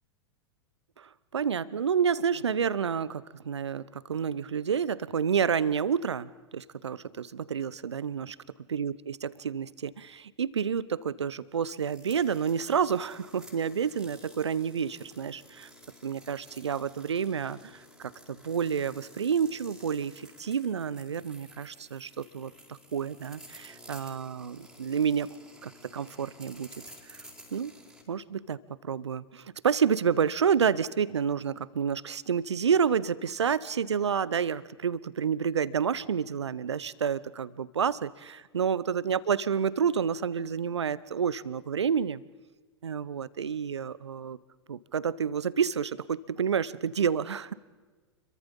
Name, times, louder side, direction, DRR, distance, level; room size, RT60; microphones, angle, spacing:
voice 1, 1.0-8.4 8.7-15.7 16.0-25.3 25.6-26.7 27.0-27.2 27.5-27.7 28.1-42.2 42.8-44.4 44.7-47.5, right 7 dB, 75° right, 19 dB, 1.0 m, -29 dB
sound 1, 11.6-28.0, equal, 5° right, 4.5 m, -53 dB
30.0 x 23.0 x 5.4 m, 1.3 s
figure-of-eight pair, 95°, 15 cm